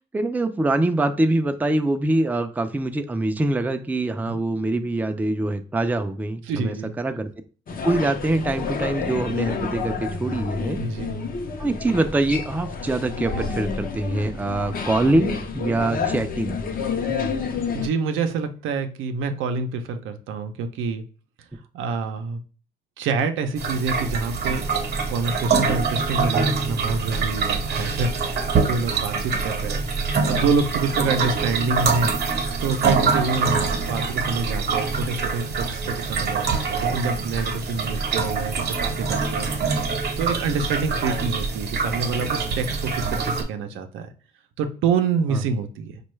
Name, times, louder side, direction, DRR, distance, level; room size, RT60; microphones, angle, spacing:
voice 1, 0.1-7.3 7.8-10.8 11.6-16.6 17.1-17.3 45.3-45.4, right 2 dB, 10° right, 7 dB, 0.4 m, -24 dB
voice 2, 6.5-6.9 10.8-11.3 17.7-21.0 21.7-22.4 23.0-24.7 25.1-29.9 30.3-32.1 32.6-39.8 40.2-44.1 44.6-46.0, right 4 dB, 85° right, 7 dB, 0.5 m, -27 dB
sound 1, 7.7-17.9, left 5 dB, 45° left, 0.6 m, -29 dB
sound 2, 23.6-43.4, right 4 dB, 55° right, 0.9 m, -25 dB
4.4 x 2.3 x 3.1 m, 0.39 s
cardioid pair, 90°, 20 cm